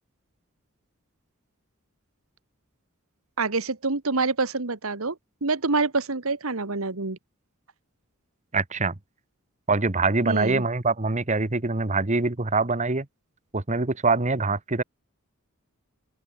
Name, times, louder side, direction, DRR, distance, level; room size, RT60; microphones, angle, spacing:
voice 1, 3.4-5.1 5.4-7.2 10.2-10.6, right 3 dB, 80° right, 1.6 m, -26 dB
voice 2, 8.5-8.9 9.7-13.0 13.5-14.8, right 3 dB, 35° right, 1.3 m, -24 dB
open air
head